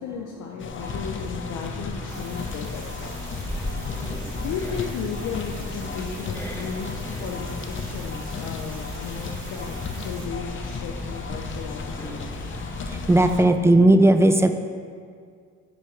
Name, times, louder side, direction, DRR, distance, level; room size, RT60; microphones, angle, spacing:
voice 1, 0.0-3.3 4.4-12.2, left 6 dB, 85° left, 0 dB, 0.7 m, -35 dB
sound 1, 0.6-13.5, left 5 dB, 40° left, 0.6 m, -36 dB
sound 2, 0.8-13.3, left 1 dB, 5° left, 1.4 m, -36 dB
sound 3, 2.1-10.3, right 4 dB, 75° right, 1.2 m, -45 dB
voice 2, 13.1-14.5, right 1 dB, 10° right, 8 dB, 0.4 m, -16 dB
6.6 x 4.7 x 5.8 m, 2.2 s
cardioid pair, 90°, 30 cm